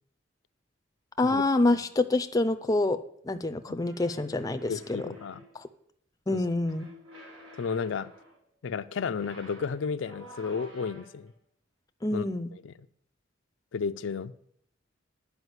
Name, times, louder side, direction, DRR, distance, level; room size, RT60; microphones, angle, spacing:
voice 1, 1.2-3.0 3.2-5.0 6.3-6.9 12.0-12.5, left 2 dB, 20° left, 9 dB, 0.5 m, -26 dB
sound 1, 3.8-5.6 6.6-8.4 9.0-11.3, left 1 dB, 90° right, 3.5 m, -50 dB
voice 2, 4.7-5.4 6.3-6.4 7.6-8.1 8.6-11.3 12.1-12.2 12.6-12.7 13.7-14.3, left 5 dB, 75° left, 11 dB, 0.4 m, -32 dB
9.7 x 5.0 x 7.9 m, 0.67 s
head